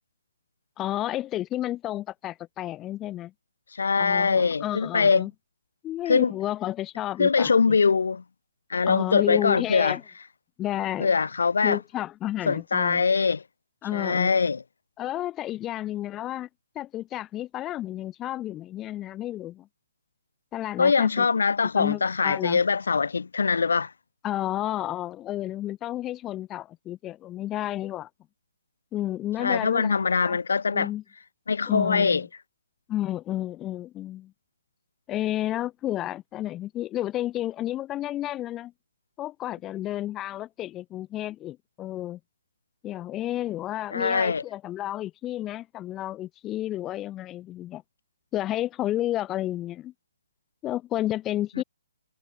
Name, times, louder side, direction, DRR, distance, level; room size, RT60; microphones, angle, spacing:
voice 1, 0.8-3.3 4.0-5.3 5.8-7.8 8.9-10.0 10.6-11.1 11.6-13.0 13.8-14.3 15.0-16.5 16.7-19.7 20.5-21.3 21.8-22.6 24.2-28.1 28.9-30.4 30.7-31.0 31.7-32.2 32.9-34.3 35.1-38.7 39.2-42.2 42.8-47.8 48.3-49.9 50.6-51.6, left 13 dB, 10° left, 4.1 m, -31 dB
voice 2, 3.7-5.3 6.1-6.3 7.2-8.2 8.7-10.0 11.0-11.8 12.5-13.4 13.9-14.6 20.8-23.9 29.4-30.9 31.5-32.3 43.9-44.4 51.6-51.7, left 5 dB, 80° left, 1.7 m, -23 dB
hypercardioid pair, 170°, 0 cm